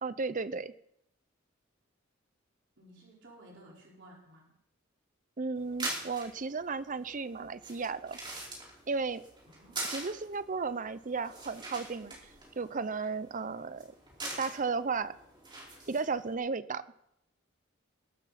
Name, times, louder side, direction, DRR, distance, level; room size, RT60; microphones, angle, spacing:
voice 1, 0.0-0.7 5.4-8.2 8.9-9.2 9.8-12.2 12.6-13.9 14.4-15.2 15.9-16.8, right 4 dB, 40° right, 15 dB, 0.7 m, -34 dB
voice 2, 2.8-4.5 9.4-9.8, right 1 dB, 65° right, -3 dB, 4.6 m, -55 dB
sound 1, 5.6-16.3, right 2 dB, 25° right, 4.7 m, -44 dB
22.0 x 12.5 x 4.2 m, 0.77 s
head